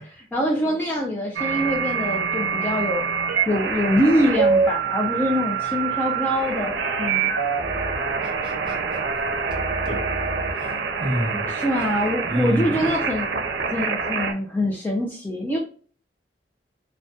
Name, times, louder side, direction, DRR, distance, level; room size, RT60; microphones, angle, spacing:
voice 1, 0.0-3.0 3.5-6.7 7.0-7.2 11.5-13.3 13.6-15.6, equal, 10° left, -2 dB, 0.3 m, -24 dB
sound 1, 1.4-14.3, right 5 dB, 85° right, 0.5 m, -25 dB
voice 2, 8.2-9.0 9.9-10.0 10.6-11.4 12.2-12.9, right 1 dB, 25° right, 0 dB, 0.8 m, -28 dB
2.7 x 2.1 x 2.2 m, 0.43 s
head